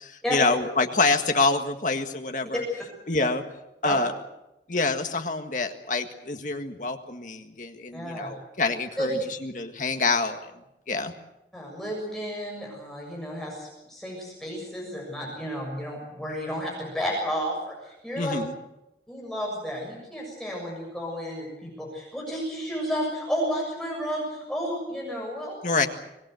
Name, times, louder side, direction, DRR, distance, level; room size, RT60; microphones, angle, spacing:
voice 1, 0.0-2.6 3.1-3.4 3.8-4.1 4.7-10.5 10.9-11.1 18.2-18.5 25.6-25.9, left 3 dB, 45° left, 6 dB, 1.8 m, -26 dB
voice 2, 7.9-8.3 9.0-9.1 11.5-18.3 19.1-25.6, equal, ahead, -2 dB, 6.9 m, -32 dB
25.0 x 19.5 x 7.9 m, 0.91 s
head